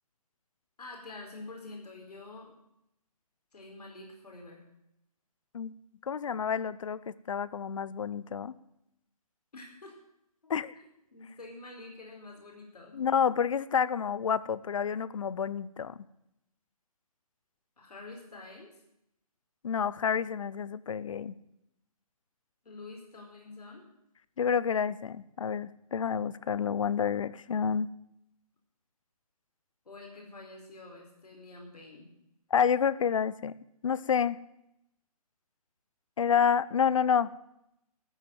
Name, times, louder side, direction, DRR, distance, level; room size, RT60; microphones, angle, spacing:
voice 1, 0.8-2.5 3.5-4.7 9.5-9.9 10.4-10.9 11.1-13.0 17.8-18.7 22.6-23.8 29.8-32.1, left 2 dB, 80° left, 1 dB, 4.6 m, -47 dB
voice 2, 6.1-8.5 10.5-10.7 12.9-16.0 19.6-21.3 24.4-27.9 32.5-33.5 33.8-34.4 36.2-37.3, left 7 dB, 55° left, 19 dB, 0.7 m, -29 dB
13.5 x 7.5 x 9.1 m, 0.81 s
hypercardioid pair, 165°, 20 cm